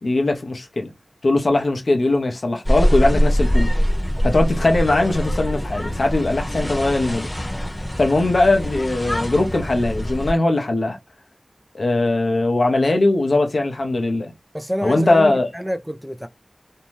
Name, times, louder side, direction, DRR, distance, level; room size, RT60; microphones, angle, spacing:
voice 1, 0.0-0.9 1.2-3.7 4.2-7.3 8.0-11.0 11.7-14.3 14.8-15.5, left 2 dB, 80° left, 0.7 m, -20 dB
sound 1, 2.6-10.3, equal, 30° left, 0.9 m, -23 dB
voice 2, 14.5-16.3, equal, 5° right, 0.4 m, -27 dB
2.7 x 2.2 x 3.1 m
wide cardioid pair, 50°, 0 cm